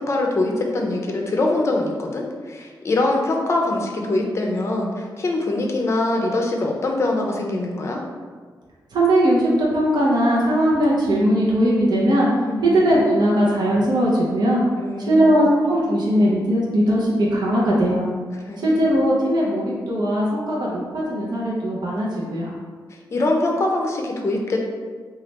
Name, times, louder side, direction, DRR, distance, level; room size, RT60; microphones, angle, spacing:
voice 1, 0.0-8.0 12.5-12.7 14.8-15.2 18.5-18.8 23.1-24.6, left 2 dB, 40° left, 0 dB, 0.5 m, -23 dB
voice 2, 8.9-12.3 12.6-14.6 15.0-18.1 18.6-22.5, equal, 70° right, -5 dB, 0.8 m, -19 dB
3.2 x 2.4 x 4.0 m, 1.5 s
wide cardioid pair, 175°, 7 cm